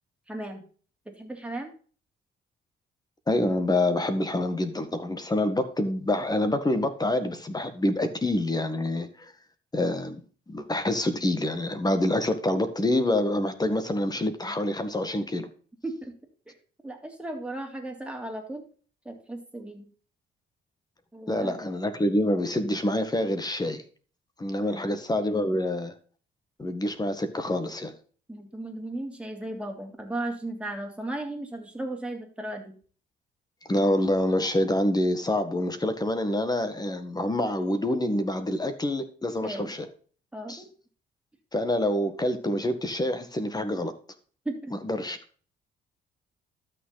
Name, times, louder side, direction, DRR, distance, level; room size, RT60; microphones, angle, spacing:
voice 1, 0.3-0.6 1.1-1.7 15.8-16.1 16.5-16.6 16.8-18.6 19.0-19.8 21.1-21.6 24.6-24.9 28.3-32.7 39.4-39.7 40.3-40.7 44.4-44.7, right 1 dB, 5° right, 2 dB, 3.2 m, -36 dB
voice 2, 3.3-9.3 9.7-10.2 10.5-15.5 21.3-23.8 24.4-25.9 26.6-27.9 33.7-39.9 40.5-40.6 41.5-43.9 44.7-45.2, left 1 dB, 20° left, 10 dB, 1.7 m, -26 dB
12.5 x 6.5 x 4.0 m, 0.41 s
cardioid pair, 90°, 20 cm